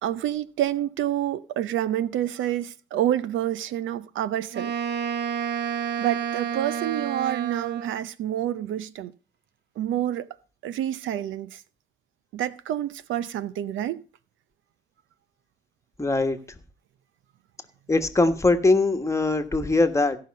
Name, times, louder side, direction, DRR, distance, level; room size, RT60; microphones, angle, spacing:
voice 1, 0.0-4.7 6.0-9.1 9.8-10.3 10.6-11.6 12.3-14.0, right 12 dB, 80° right, 0.7 m, -28 dB
Wind instrument woodwind instrument, 4.5-8.1, right 8 dB, 60° right, 1.3 m, -30 dB
voice 2, 16.0-16.4 17.9-20.2, left 2 dB, 15° left, 1.4 m, -21 dB
16.5 x 5.8 x 5.3 m
cardioid pair, 90°, 20 cm